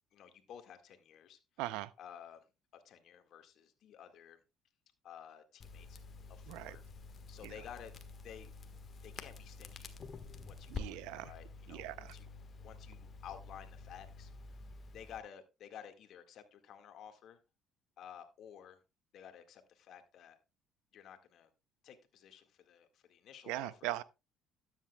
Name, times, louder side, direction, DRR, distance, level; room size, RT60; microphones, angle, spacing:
voice 1, 0.1-1.4 2.0-2.5 2.7-4.4 5.0-6.0 6.3-6.8 7.3-7.9 8.2-8.5 9.0-10.0 10.4-12.3 12.6-14.6 14.9-17.4 18.0-18.8 19.1-20.4 20.9-21.5 21.8-24.0, left 8 dB, 60° left, 1.8 m, -53 dB
voice 2, 1.6-1.9 6.5-6.8 10.7-11.3 11.7-12.1 23.5-24.0, right 16 dB, 80° right, 0.6 m, -39 dB
Crackle, 5.6-15.2, left 4 dB, 45° left, 1.5 m, -49 dB
13.0 x 9.2 x 2.3 m
supercardioid pair, 75°, 0 cm